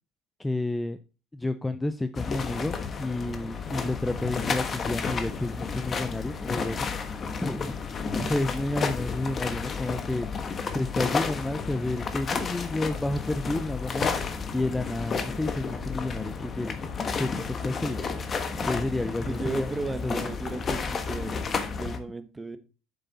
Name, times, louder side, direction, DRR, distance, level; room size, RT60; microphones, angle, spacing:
voice 1, 0.4-1.0 1.3-6.9 7.4-10.3 10.7-14.2 14.5-16.9 17.2-18.0 18.7-19.7 20.0-20.2, left 2 dB, 10° left, 10 dB, 0.5 m, -30 dB
sound 1, 2.1-22.0, left 5 dB, 35° left, 1.2 m, -32 dB
voice 2, 18.9-21.5 21.8-22.6, right 3 dB, 15° right, 11 dB, 1.0 m, -35 dB
7.7 x 6.7 x 4.0 m, 0.33 s
supercardioid pair, 115°, 0 cm